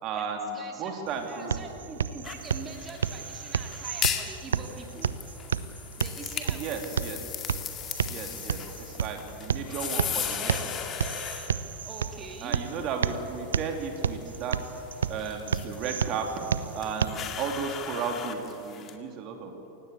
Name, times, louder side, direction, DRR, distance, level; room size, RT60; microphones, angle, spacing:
voice 1, 0.0-1.5 6.5-7.2 8.1-10.6 12.4-14.6 15.1-16.3 16.7-19.7, right 5 dB, 35° right, 4 dB, 2.8 m, -34 dB
voice 2, 0.5-0.9 1.3-5.2 6.0-6.8 11.8-12.6, right 4 dB, 20° right, 2 dB, 2.7 m, -43 dB
sound 1, 1.1-17.1, right 7 dB, 65° right, 0.8 m, -32 dB
sound 2, 2.2-18.9, left 8 dB, 30° left, 2.1 m, -38 dB
28.0 x 16.5 x 8.4 m, 3.0 s
figure-of-eight pair, 90°, 0 cm